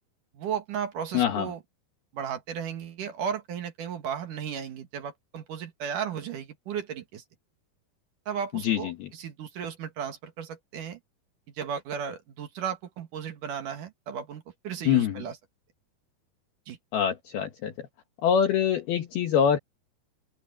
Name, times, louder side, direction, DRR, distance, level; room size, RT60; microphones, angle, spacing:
voice 1, 0.3-1.6 2.1-7.2 8.3-11.0 11.6-15.4 16.7-16.8, right 8 dB, 55° right, 2.7 m, -35 dB
voice 2, 1.1-1.5 8.6-9.1 14.9-15.2 16.9-17.9 18.2-19.6, left 8 dB, 65° left, 3.0 m, -24 dB
open air
omnidirectional pair, 5.3 m